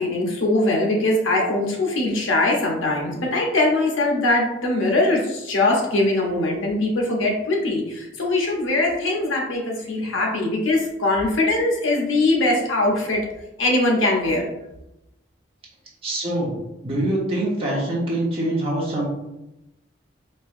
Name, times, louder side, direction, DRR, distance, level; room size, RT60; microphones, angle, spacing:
voice 1, 0.0-13.2 13.6-14.4, left 2 dB, 80° left, 0 dB, 0.8 m, -21 dB
voice 2, 16.0-16.5 16.8-19.1, right 1 dB, 30° right, -5 dB, 0.9 m, -24 dB
4.3 x 2.6 x 2.5 m, 0.92 s
head